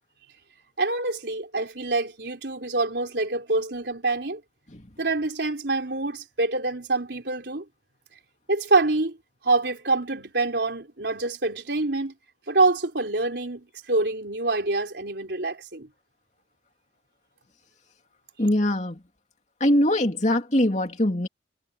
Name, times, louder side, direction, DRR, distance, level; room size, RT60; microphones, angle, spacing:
voice 1, 0.8-4.4 5.0-7.6 8.5-9.2 9.4-12.1 12.5-15.9, right 3 dB, 65° right, 3.8 m, -26 dB
voice 2, 18.4-19.0 19.6-21.3, left 1 dB, 40° left, 2.7 m, -22 dB
head